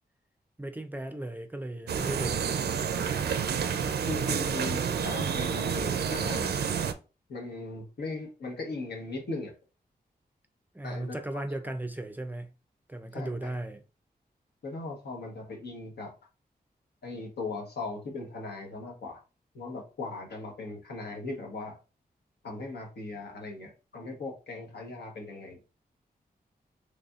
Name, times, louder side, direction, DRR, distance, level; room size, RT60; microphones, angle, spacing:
voice 1, 0.6-2.7 10.7-12.5 12.9-13.8, right 1 dB, 10° right, 0.4 m, -36 dB
sound 1, 1.9-6.9, right 7 dB, 85° right, 0.4 m, -29 dB
voice 2, 4.1-6.6 7.3-9.5 10.8-11.2 11.6-11.7 13.1-13.5 14.6-16.1 17.0-19.2 19.5-21.8 22.4-25.6, left 3 dB, 85° left, 1.1 m, -38 dB
4.0 x 3.3 x 2.4 m
wide cardioid pair, 135°, 16 cm